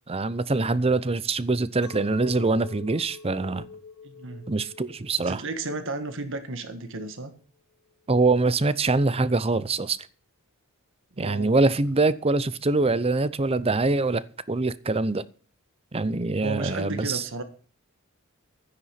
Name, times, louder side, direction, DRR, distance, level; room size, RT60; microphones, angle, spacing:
voice 1, 0.1-3.7 4.5-5.4 8.1-10.0 11.2-15.2 15.9-17.2, right 3 dB, 25° right, 0.7 m, -24 dB
Chink clink, 1.8-7.3, left 4 dB, 90° left, 2.1 m, -46 dB
voice 2, 4.0-4.5 5.3-7.3 11.1-11.6 16.4-17.4, right 2 dB, 60° right, 1.6 m, -33 dB
13.0 x 9.9 x 5.9 m
head